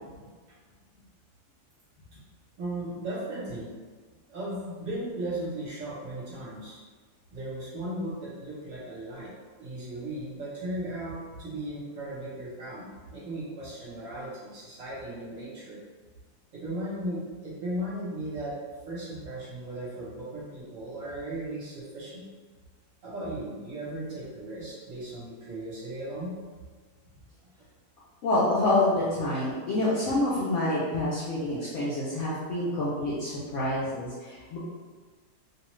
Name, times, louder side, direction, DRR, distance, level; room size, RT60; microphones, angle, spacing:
voice 1, 2.6-3.7 4.3-6.8 7.3-9.3 9.6-15.8 16.5-18.6 18.9-22.2 23.0-26.3, right 1 dB, 55° right, -7 dB, 1.2 m, -36 dB
voice 2, 28.2-34.6, left 1 dB, 65° left, -8 dB, 0.8 m, -27 dB
2.8 x 2.3 x 3.0 m, 1.5 s
omnidirectional pair, 1.7 m